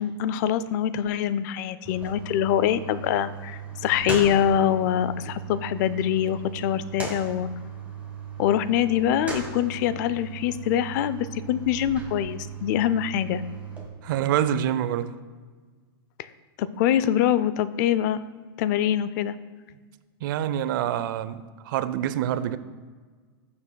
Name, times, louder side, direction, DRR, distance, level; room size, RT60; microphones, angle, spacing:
voice 1, 0.0-7.5 8.4-13.4 16.6-18.2 18.6-19.4, left 10 dB, 45° left, 15 dB, 0.4 m, -24 dB
sound 1, 1.8-13.9, right 6 dB, 10° right, 1.5 m, -37 dB
voice 2, 14.0-15.1 20.2-22.6, right 10 dB, 55° right, 14 dB, 0.5 m, -26 dB
12.5 x 6.9 x 2.2 m, 1.5 s
hypercardioid pair, 140°, 13 cm